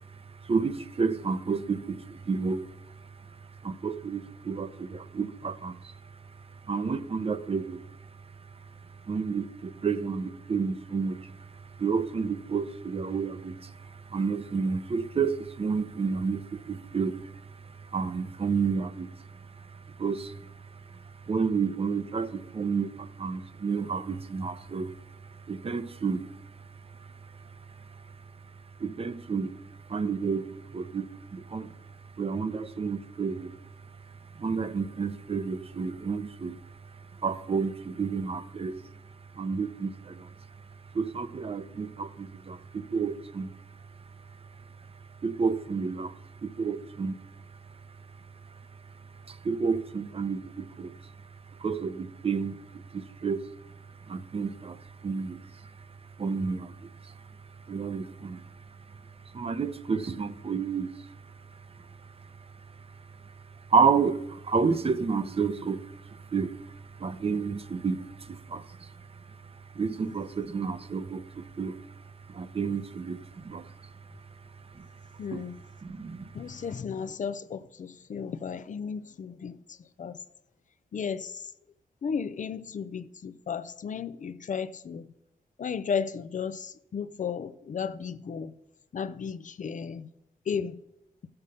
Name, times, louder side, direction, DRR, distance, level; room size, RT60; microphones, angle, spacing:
voice 1, 0.4-2.7 3.6-5.9 6.7-7.8 9.0-11.5 11.8-17.3 17.8-20.5 21.3-25.0 25.5-26.3 28.8-29.5 29.9-31.7 32.2-33.6 34.4-36.6 37.2-38.8 39.3-40.3 40.9-43.5 45.2-46.1 46.4-47.1 49.3-50.9 51.6-53.4 54.1-55.7 56.2-57.1 57.7-58.4 59.3-61.1 63.7-68.9 69.7-71.9 72.3-73.7 74.7-74.9 75.3-75.4 75.8-76.3, right 5 dB, 40° right, 0.7 m, -30 dB
voice 2, 75.2-75.6 76.3-80.2 80.9-81.5 82.0-85.1 85.6-88.5 88.9-90.1 90.5-90.8, left 6 dB, 55° left, 0.5 m, -34 dB
14.0 x 6.7 x 5.5 m
cardioid pair, 95°, 16 cm